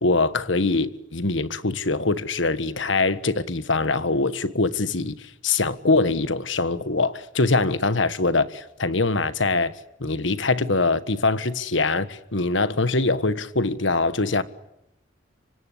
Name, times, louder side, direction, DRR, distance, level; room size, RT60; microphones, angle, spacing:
voice 1, 0.0-9.7 10.0-14.4, left 3 dB, 75° left, 1.6 m, -23 dB
25.5 x 25.5 x 8.4 m
head